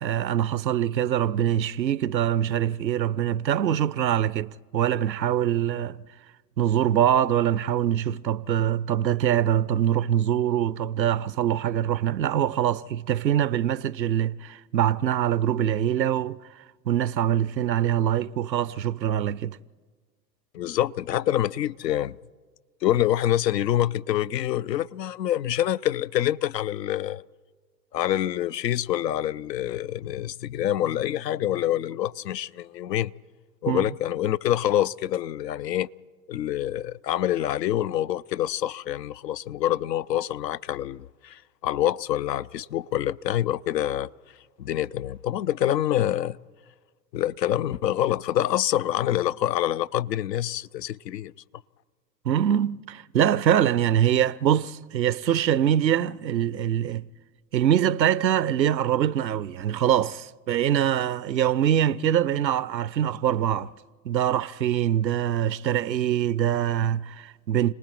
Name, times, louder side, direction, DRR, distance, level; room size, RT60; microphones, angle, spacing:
voice 1, 0.0-6.0 6.6-16.4 16.9-19.6 33.7-33.9 52.2-57.1 57.5-63.7 64.0-67.7, right 10 dB, 90° right, 0.6 m, -24 dB
voice 2, 20.5-22.2 22.8-27.2 27.9-33.1 33.6-35.9 36.3-44.1 44.6-46.4 47.1-51.3, left 12 dB, 75° left, 0.6 m, -26 dB
30.0 x 19.5 x 4.5 m
figure-of-eight pair, 95°, 50 cm